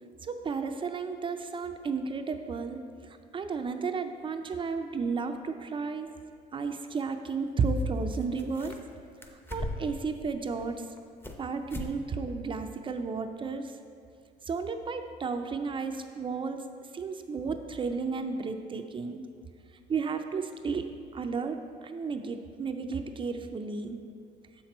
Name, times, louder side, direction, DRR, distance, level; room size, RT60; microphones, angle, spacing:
voice 1, 0.2-2.8 3.3-6.1 6.5-8.7 9.5-10.8 11.4-13.6 14.5-16.6 16.9-19.2 19.9-21.6 21.8-24.0, right 4 dB, 30° right, 7 dB, 0.4 m, -33 dB
sound 1, 7.8-7.9 8.1-8.9 9.2-10.0 10.5-11.4 11.7-11.9 12.3-12.4 12.9-13.0, left 1 dB, 15° left, 0.7 m, -39 dB
7.0 x 5.9 x 4.2 m, 2.2 s
cardioid pair, 110°, 17 cm